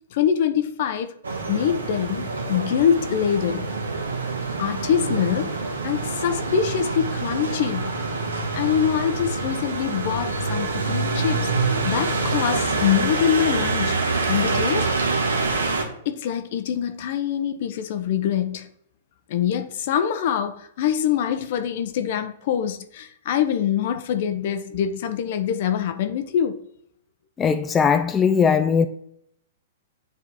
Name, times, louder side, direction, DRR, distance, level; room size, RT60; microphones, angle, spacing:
voice 1, 0.1-1.1 1.5-3.7 4.6-5.6 5.8-7.9 8.5-11.5 11.8-14.0 14.3-14.9 16.0-18.7 19.3-26.6, left 9 dB, 60° left, 0.7 m, -24 dB
sound 1, 1.2-15.8, right 3 dB, 90° right, 1.2 m, -26 dB
voice 2, 27.4-28.9, left 6 dB, 20° left, 0.4 m, -19 dB
9.2 x 3.5 x 3.0 m
hypercardioid pair, 120°, 0 cm